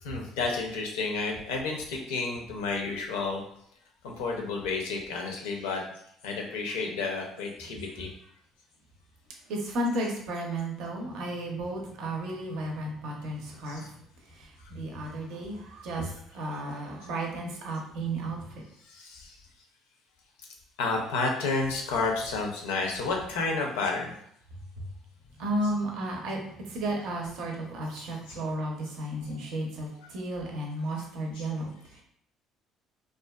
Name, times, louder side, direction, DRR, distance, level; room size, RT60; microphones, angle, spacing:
voice 1, 0.0-3.4 4.0-5.8 6.2-8.1 12.2-12.3 13.7-13.9 18.8-19.4 20.8-24.1 28.0-28.4 31.4-31.5, left 3 dB, 85° left, 1 dB, 0.5 m, -31 dB
voice 2, 9.5-14.0 14.3-18.6 24.8-24.9 25.4-32.0, right 1 dB, 70° right, 0 dB, 0.6 m, -33 dB
2.4 x 2.3 x 2.2 m, 0.68 s
hypercardioid pair, 65°, 0 cm